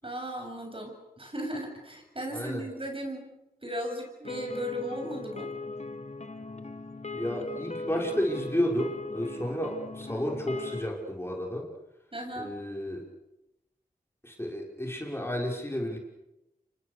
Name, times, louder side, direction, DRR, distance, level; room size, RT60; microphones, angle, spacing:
voice 1, 0.0-3.3 3.6-5.5 12.1-12.6, equal, 35° right, 3 dB, 7.8 m, -36 dB
voice 2, 2.3-2.6 7.1-11.7 12.4-13.0 14.2-16.0, equal, 15° left, 0 dB, 6.0 m, -32 dB
sound 1, 4.2-10.9, left 2 dB, 45° left, 2.0 m, -39 dB
28.5 x 24.5 x 6.8 m, 0.90 s
cardioid pair, 40°, 16 cm